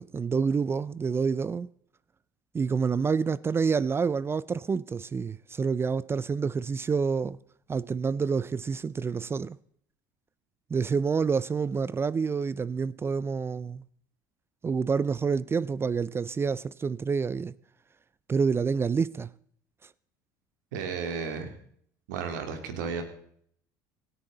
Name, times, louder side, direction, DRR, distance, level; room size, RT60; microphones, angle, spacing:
voice 1, 0.0-1.7 2.5-7.4 7.7-9.6 10.7-13.8 14.6-17.5 18.3-19.3, right 5 dB, 25° right, 0.5 m, -28 dB
voice 2, 20.7-21.5 22.1-23.0, right 6 dB, 80° right, 3.0 m, -33 dB
18.0 x 14.0 x 4.0 m
hypercardioid pair, 80°, 10 cm